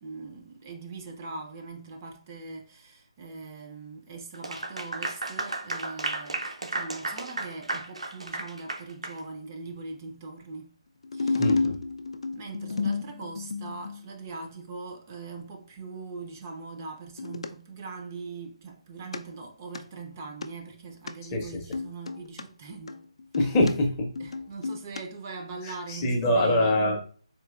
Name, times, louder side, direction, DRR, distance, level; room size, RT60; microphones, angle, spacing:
voice 1, 0.0-10.7 11.1-11.5 12.3-23.0 24.2-26.7, right 4 dB, 30° right, 0.4 m, -41 dB
Clapping / Applause, 4.3-9.2, right 2 dB, 90° right, 0.6 m, -34 dB
sound 1, 11.0-14.1 17.2-17.5 19.1-19.2 19.6-19.8 20.4-20.5 21.1-21.2 21.7-22.4 22.9-23.7 24.2-25.0 25.3-25.4, left 4 dB, 70° left, 0.4 m, -31 dB
voice 2, 11.4-11.8 21.3-21.6 23.4-24.3 25.6-27.0, left 1 dB, 20° left, 0.6 m, -24 dB
3.7 x 2.7 x 2.4 m
figure-of-eight pair, 155°, 3 cm